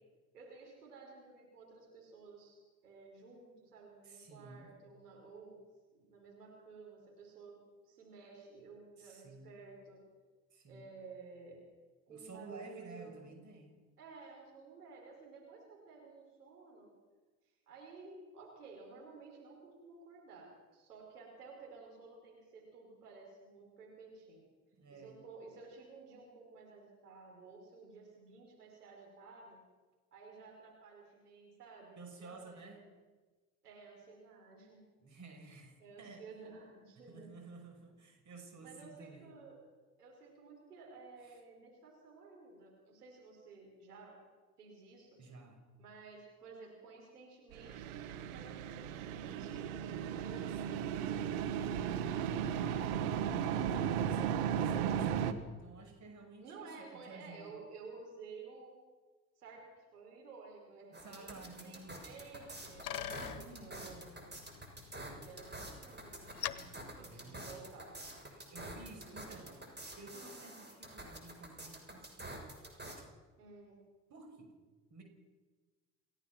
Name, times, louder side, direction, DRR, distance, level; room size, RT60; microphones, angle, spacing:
voice 1, 0.3-5.6 5.9-7.6 7.8-10.0 10.7-11.6 12.1-13.2 14.0-16.9 17.7-24.4 24.9-29.6 30.1-32.9 33.6-34.8 35.8-37.3 38.6-39.6 40.0-44.2 44.6-45.2 45.8-49.7 50.0-53.6 56.4-58.8 59.4-64.1 64.9-67.9 68.8-69.6 73.4-73.8, right 4 dB, 80° right, -1 dB, 5.1 m, -54 dB
voice 2, 4.0-4.7 9.0-9.5 10.5-10.9 12.1-13.8 24.8-25.2 32.0-32.8 35.0-36.2 37.1-39.3 41.2-41.4 45.2-45.6 50.6-50.8 53.5-57.5 60.9-62.0 62.9-64.1 66.7-67.6 68.3-69.6 70.0-72.3 74.1-74.5 74.9-75.0, right 3 dB, 40° right, 4 dB, 5.9 m, -53 dB
sound 1, 47.5-55.3, right 8 dB, 60° right, 1.6 m, -35 dB
sound 2, 60.9-73.0, right 1 dB, 20° right, 6.5 m, -48 dB
Bicycle, 62.2-67.9, left 9 dB, 70° left, 1.1 m, -47 dB
28.5 x 17.0 x 6.1 m, 1.3 s
figure-of-eight pair, 55°, 46 cm